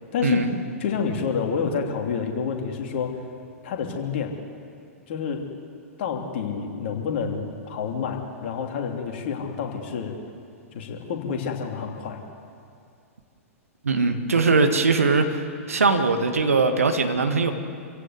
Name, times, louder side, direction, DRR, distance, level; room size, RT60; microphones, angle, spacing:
voice 1, 0.1-0.4 0.8-3.2 3.6-4.3 5.1-5.4 6.0-10.1 10.7-12.2, left 6 dB, 45° left, 2 dB, 3.0 m, -28 dB
voice 2, 13.8-15.4 15.7-17.5, right 4 dB, 70° right, 6 dB, 1.9 m, -21 dB
27.0 x 16.5 x 8.2 m, 2.5 s
figure-of-eight pair, 105°, 8 cm